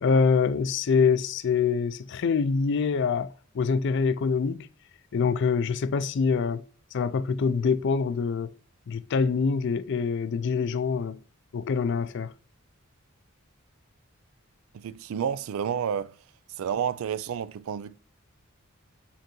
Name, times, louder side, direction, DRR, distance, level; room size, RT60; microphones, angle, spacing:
voice 1, 0.0-4.7 5.1-6.6 6.9-8.5 8.9-11.2 11.5-12.3, left 5 dB, 60° left, 0.4 m, -25 dB
voice 2, 14.7-16.1 16.6-18.0, right 8 dB, 85° right, 0.3 m, -30 dB
4.4 x 3.8 x 3.0 m
head